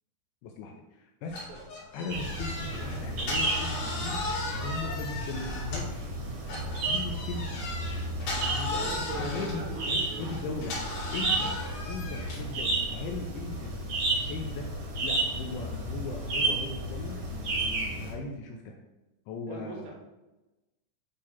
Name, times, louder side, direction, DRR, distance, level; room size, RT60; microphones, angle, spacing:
voice 1, 0.4-1.5 1.9-6.1 6.9-7.7 8.4-11.5 11.9-13.7 14.1-14.7 15.0-18.8 19.3-20.0, left 3 dB, 80° left, 2 dB, 2.7 m, -38 dB
sound 1, 1.3-6.0 6.5-12.5, left 2 dB, 45° left, 3.6 m, -37 dB
sound 2, 2.1-18.1, right 2 dB, 45° right, 2.5 m, -32 dB
voice 2, 2.5-2.9 8.7-10.7 19.5-20.0, right 3 dB, 75° right, -1 dB, 3.9 m, -41 dB
9.4 x 3.9 x 5.7 m, 1.1 s
omnidirectional pair, 6.0 m